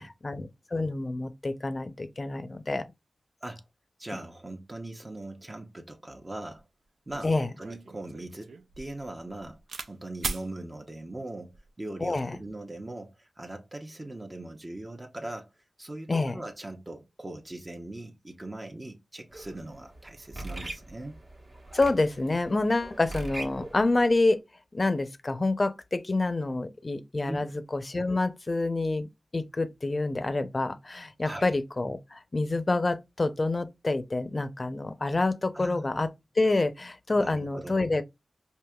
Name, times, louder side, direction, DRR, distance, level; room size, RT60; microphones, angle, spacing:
voice 1, 0.2-2.8 7.2-7.5 12.0-12.4 16.1-16.4 21.7-24.4 24.7-29.1 29.3-36.1 36.4-38.0, left 2 dB, 45° left, 0.5 m, -27 dB
voice 2, 4.0-6.6 7.1-9.6 9.9-15.5 15.8-21.2 27.3-27.5 31.2-31.5 35.5-36.0 37.2-37.8, right 2 dB, 35° right, 0.7 m, -40 dB
sound 1, 6.5-6.6 7.1-9.9 10.2-10.5 11.3-11.7, right 4 dB, 90° right, 0.4 m, -39 dB
sound 2, 19.3-24.2, right 2 dB, 60° right, 1.2 m, -42 dB
4.7 x 2.8 x 2.3 m
cardioid pair, 40°, 0 cm